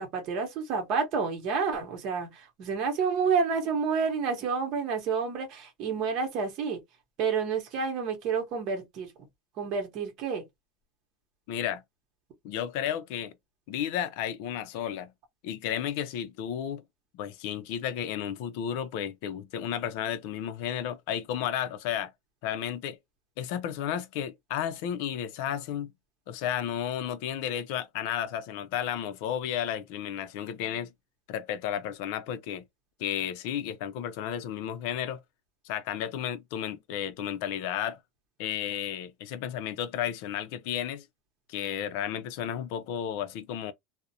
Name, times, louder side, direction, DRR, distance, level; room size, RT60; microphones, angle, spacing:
voice 1, 0.0-6.8 7.2-9.1 9.6-10.4, right 5 dB, 45° right, 0.9 m, -29 dB
voice 2, 11.5-11.8 12.4-13.3 13.7-15.1 15.4-16.8 17.1-22.1 22.4-23.0 23.4-25.9 26.3-30.9 31.3-32.6 33.0-35.2 35.6-38.0 38.4-41.1 41.5-43.7, left 10 dB, 65° left, 0.4 m, -33 dB
2.4 x 2.0 x 2.7 m
cardioid pair, 170°, 0 cm